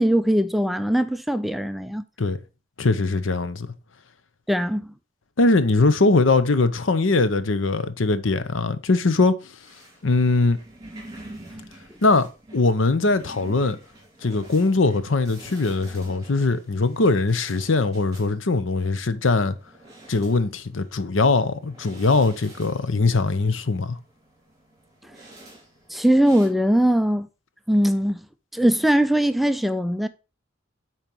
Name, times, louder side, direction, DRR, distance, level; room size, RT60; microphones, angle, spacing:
voice 1, 0.0-2.0 4.5-4.9 25.9-27.3 27.7-28.2 28.5-30.1, right 1 dB, ahead, 0.3 m, -20 dB
voice 2, 2.8-3.7 5.4-9.5 10.0-10.6 12.0-12.3 12.5-13.8 14.2-19.5 20.1-24.0, left 3 dB, 80° left, 0.8 m, -21 dB
sound 1, 9.6-26.5, right 1 dB, 20° right, 4.4 m, -48 dB
9.0 x 4.5 x 4.5 m
head